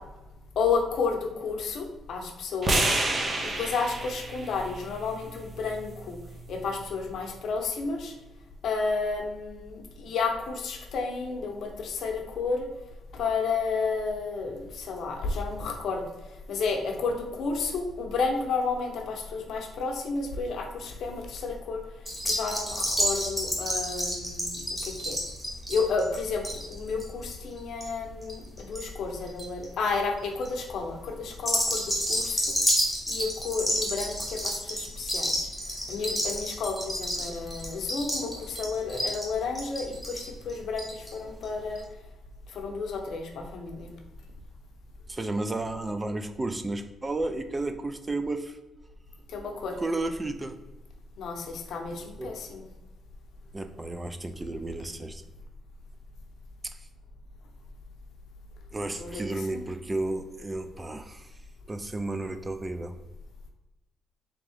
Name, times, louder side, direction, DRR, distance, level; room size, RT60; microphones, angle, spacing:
voice 1, 0.6-3.1 3.4-6.2 6.5-8.1 8.6-12.7 13.1-16.0 16.5-21.8 22.2-25.2 25.7-32.6 33.1-41.8 42.5-43.9 49.3-49.8 51.2-52.6 59.0-59.6, left 4 dB, 70° left, 3 dB, 0.7 m, -31 dB
sound 1, 2.6-6.8, right 2 dB, 35° right, 0.8 m, -31 dB
sound 2, 22.1-28.8 29.1-29.6 30.2-30.5 31.3-41.1 41.4-41.5 41.8-41.9, equal, ahead, 1.3 m, -30 dB
voice 2, 45.1-48.6 49.8-50.6 52.2-52.3 53.5-55.2 58.7-61.3 61.7-62.9, right 2 dB, 20° right, 8 dB, 0.4 m, -32 dB
3.5 x 3.5 x 3.4 m, 1.1 s
cardioid pair, 90°, 0 cm